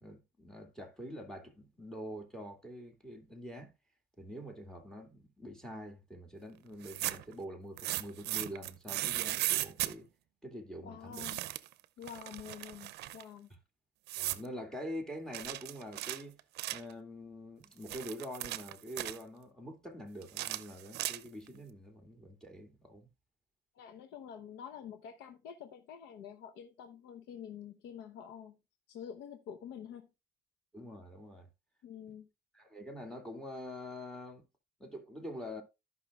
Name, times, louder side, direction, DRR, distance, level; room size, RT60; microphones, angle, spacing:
voice 1, 0.0-3.7 4.2-10.1 10.4-11.3 14.2-16.4 16.7-23.1 30.7-31.5 32.5-34.4 34.8-35.6, equal, 5° left, 2.2 m, -45 dB
sound 1, 6.7-7.3 7.8-9.9 11.1-11.7 12.0-13.2 14.1-14.5 15.3-16.9 17.6-19.2 20.2-21.5, right 16 dB, 80° right, 0.6 m, -37 dB
voice 2, 10.8-11.4 12.0-13.5 23.7-28.6 28.9-30.1 31.8-32.3, left 8 dB, 85° left, 0.9 m, -47 dB
14.0 x 5.6 x 2.4 m
cardioid pair, 110°, 17 cm